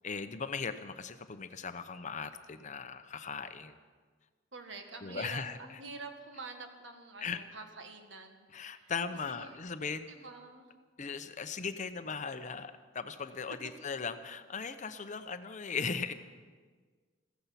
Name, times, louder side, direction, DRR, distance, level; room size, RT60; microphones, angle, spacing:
voice 1, 0.0-3.8 5.0-5.6 7.2-7.4 8.5-10.1 11.0-16.1, left 5 dB, 40° left, 10 dB, 0.8 m, -38 dB
voice 2, 4.5-8.9 9.2-9.6 10.0-10.8, right 3 dB, 80° right, 5 dB, 1.8 m, -47 dB
15.5 x 15.0 x 5.9 m, 1.5 s
head